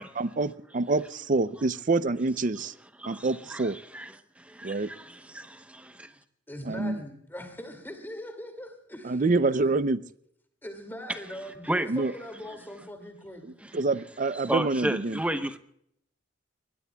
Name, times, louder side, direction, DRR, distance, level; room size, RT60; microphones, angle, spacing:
voice 1, 0.2-2.7 3.1-3.8 4.6-4.9 6.7-7.0 9.0-10.0 11.9-12.1 13.7-15.2, right 3 dB, 45° right, 0.5 m, -26 dB
voice 2, 3.0-6.1 11.6-11.9 14.4-15.6, right 1 dB, 5° right, 0.9 m, -33 dB
voice 3, 6.5-9.2 9.5-9.7 10.6-13.5, left 1 dB, 10° left, 2.3 m, -41 dB
24.5 x 20.5 x 2.3 m
head